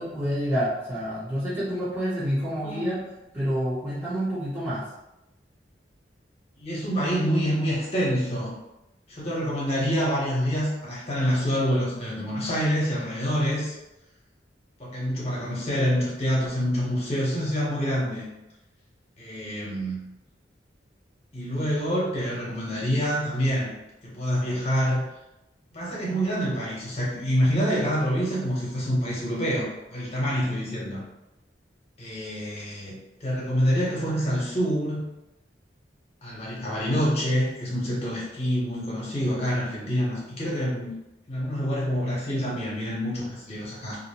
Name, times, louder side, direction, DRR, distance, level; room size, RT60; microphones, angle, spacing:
voice 1, 0.0-3.0 3.3-4.9, equal, 15° right, -13 dB, 0.7 m, -28 dB
voice 2, 6.6-8.5 9.1-13.8 14.8-18.3 19.2-20.0 21.3-23.7 24.0-25.0 25.7-31.0 32.0-35.0 36.2-40.9 41.3-44.0, equal, 35° left, -5 dB, 0.9 m, -26 dB
2.5 x 2.0 x 2.8 m, 0.94 s
head